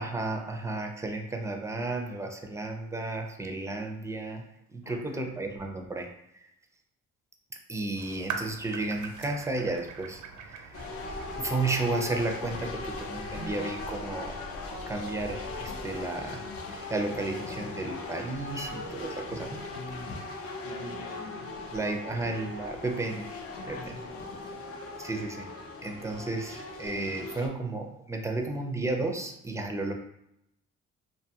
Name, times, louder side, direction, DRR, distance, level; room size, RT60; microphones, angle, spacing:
voice 1, 0.0-4.4 4.7-6.5 7.7-10.9 11.4-14.5 14.9-16.4 16.7-19.6 21.7-23.3 23.7-23.8 25.0-25.4 25.8-29.9, right 2 dB, 10° right, 3 dB, 0.4 m, -33 dB
voice 2, 4.8-5.4 19.7-20.1 20.6-21.6 23.6-24.7, left 2 dB, 85° left, -2 dB, 0.9 m, -45 dB
sound 1, 8.0-12.0, right 6 dB, 85° right, 0.5 m, -41 dB
sound 2, 10.7-27.5, left 2 dB, 50° left, 0.5 m, -39 dB
2.6 x 2.3 x 2.7 m, 0.79 s
cardioid pair, 90°, 30 cm